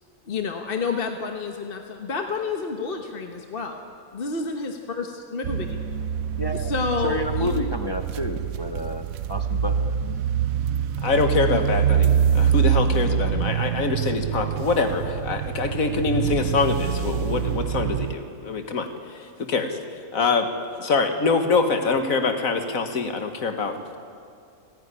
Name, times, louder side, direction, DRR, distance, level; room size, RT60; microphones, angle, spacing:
voice 1, 0.3-5.1 5.3-5.7 6.5-7.5, left 4 dB, 45° left, 4 dB, 1.3 m, -29 dB
Tyres Car, 5.4-18.1, right 8 dB, 85° right, 1.1 m, -25 dB
voice 2, 6.4-6.7 7.0-9.9, left 2 dB, 25° left, 6 dB, 0.6 m, -30 dB
voice 3, 11.0-19.8 20.1-20.5 20.8-24.0, left 4 dB, 75° left, 6 dB, 1.9 m, -24 dB
29.5 x 10.5 x 9.9 m, 2.4 s
omnidirectional pair, 1.4 m